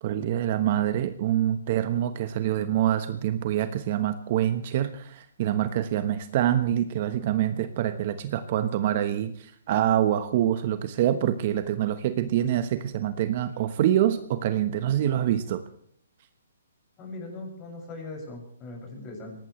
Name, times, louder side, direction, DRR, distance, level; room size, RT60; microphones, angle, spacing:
voice 1, 0.0-15.6, right 11 dB, 40° right, 10 dB, 1.2 m, -25 dB
voice 2, 17.0-19.4, left 2 dB, 20° left, 2 dB, 6.7 m, -40 dB
23.0 x 18.5 x 3.2 m, 0.62 s
hypercardioid pair, 160°, 0 cm